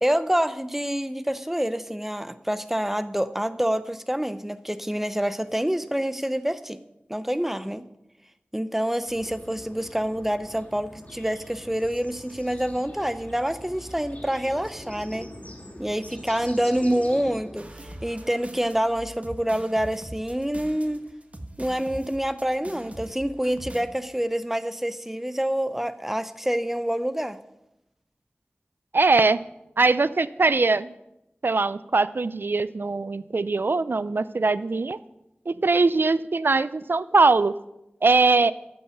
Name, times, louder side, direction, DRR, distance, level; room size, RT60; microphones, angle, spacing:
voice 1, 0.0-6.8 7.1-7.8 8.5-15.3 15.8-21.0 21.6-27.4, equal, 5° right, 13 dB, 0.7 m, -27 dB
sound 1, 9.1-17.7, left 1 dB, 35° left, 2.5 m, -44 dB
sound 2, 17.6-23.8, right 1 dB, 35° right, 1.3 m, -42 dB
voice 2, 28.9-29.4 29.8-30.9 31.4-35.0 35.5-37.6 38.0-38.5, right 3 dB, 65° right, 16 dB, 0.5 m, -21 dB
13.0 x 5.5 x 8.0 m, 0.87 s
wide cardioid pair, 50°, 4 cm